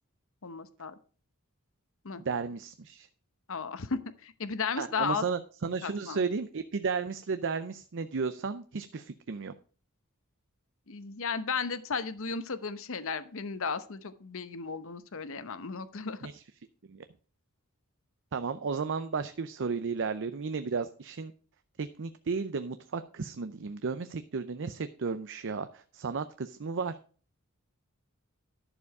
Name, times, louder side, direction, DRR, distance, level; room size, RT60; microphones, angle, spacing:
voice 1, 0.4-0.9 2.0-2.2 3.5-5.2 5.8-6.2 10.9-16.2, left 5 dB, 65° left, 13 dB, 0.9 m, -34 dB
voice 2, 2.2-3.1 4.8-9.5 16.3-16.4 16.9-17.0 18.3-21.3 21.8-27.0, right 5 dB, 60° right, 11 dB, 0.6 m, -34 dB
11.0 x 7.0 x 4.8 m, 0.40 s
head